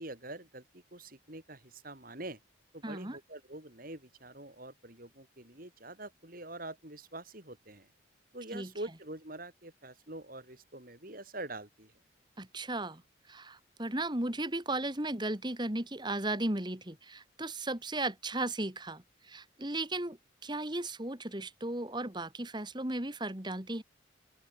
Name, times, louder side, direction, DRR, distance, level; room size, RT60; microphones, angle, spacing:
voice 1, 0.0-2.4 2.7-7.9 8.3-11.9, right 2 dB, 45° right, 5.5 m, -45 dB
voice 2, 2.8-3.2 8.5-8.7 12.4-13.0 13.3-20.2 20.4-23.8, right 2 dB, 25° right, 2.4 m, -35 dB
open air
head